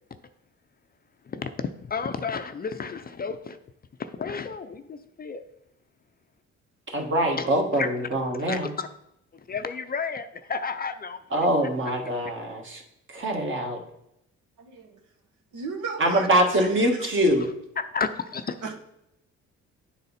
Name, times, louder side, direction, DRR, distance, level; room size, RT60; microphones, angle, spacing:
voice 1, 1.3-3.6 4.0-5.5 7.4-7.5 7.7-7.9 8.4-8.9 9.5-11.2 17.0-17.1 17.8-18.6, left 5 dB, 30° left, 10 dB, 0.5 m, -32 dB
voice 2, 6.9-8.7 11.3-12.8 13.1-13.8 16.0-17.5, right 1 dB, 40° right, 2 dB, 1.6 m, -24 dB
voice 3, 14.6-15.0 15.5-16.3 16.6-17.1 18.6-18.7, right 4 dB, 80° right, 2 dB, 1.3 m, -35 dB
9.7 x 4.1 x 4.1 m, 0.80 s
cardioid pair, 90°, 30 cm